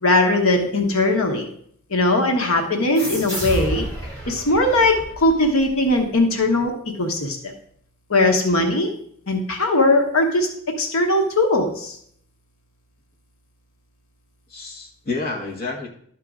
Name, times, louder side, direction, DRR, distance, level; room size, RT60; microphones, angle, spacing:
voice 1, 0.0-1.4 1.9-3.8 4.2-6.7 7.0-7.5 8.1-8.9 9.3-10.5 10.8-11.9, left 2 dB, 75° left, 3 dB, 1.2 m, -19 dB
sound 1, 2.9-6.2, right 1 dB, 15° left, 2.8 m, -31 dB
voice 2, 4.4-4.9 14.5-15.9, left 3 dB, 40° left, -1 dB, 1.2 m, -31 dB
12.0 x 4.6 x 3.6 m, 0.64 s
head